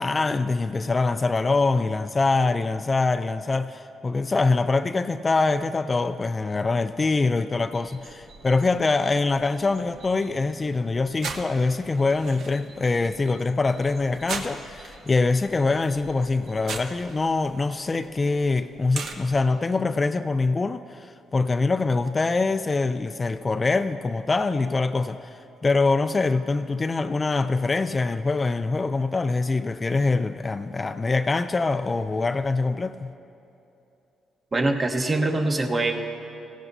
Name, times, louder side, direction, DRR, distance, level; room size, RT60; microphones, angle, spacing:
voice 1, 0.0-33.1, left 3 dB, 30° left, 0.3 m, -24 dB
sound 1, 7.6-19.4, right 4 dB, 70° right, 0.9 m, -41 dB
voice 2, 34.5-35.9, right 2 dB, 35° right, 1.1 m, -23 dB
16.5 x 16.5 x 2.7 m
cardioid pair, 90°, 0 cm